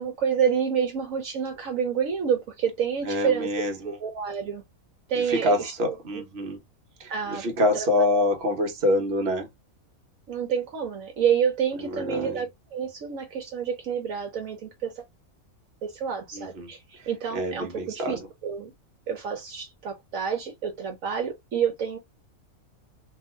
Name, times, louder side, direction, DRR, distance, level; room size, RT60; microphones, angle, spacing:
voice 1, 0.0-3.5 3.8-4.6 5.1-6.2 7.1-7.5 7.7-7.9 10.3-15.0 15.8-18.7 19.1-22.0, right 7 dB, 70° right, 1.1 m, -28 dB
voice 2, 3.0-4.0 5.1-6.6 7.0-9.5 11.8-12.4 16.3-16.7 17.0-18.2, left 1 dB, 50° right, 1.2 m, -26 dB
3.1 x 2.6 x 2.3 m
omnidirectional pair, 1.5 m